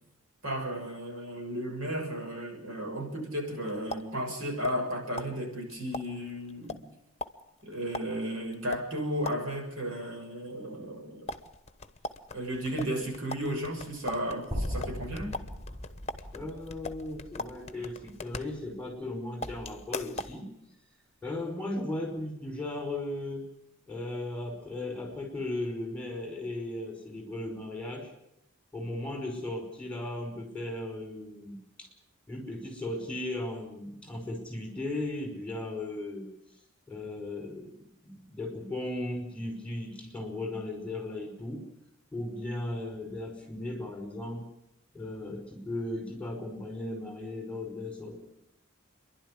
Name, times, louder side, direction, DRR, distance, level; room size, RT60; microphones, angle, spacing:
voice 1, 0.4-6.8 7.6-11.3 12.3-15.3, equal, 75° right, 2 dB, 6.5 m, -34 dB
sound 1, 3.4-4.9 5.2-9.7 11.3-19.1 19.4-20.4, left 2 dB, 30° left, 1.1 m, -41 dB
sound 2, 14.5-18.7, equal, 10° right, 5.6 m, -39 dB
voice 2, 16.3-20.5 21.2-23.5 23.9-28.1 28.7-31.9 32.3-36.3 36.9-41.6 42.1-44.5 44.9-48.2, left 1 dB, 5° left, 3 dB, 5.2 m, -36 dB
28.5 x 11.5 x 9.8 m, 0.80 s
head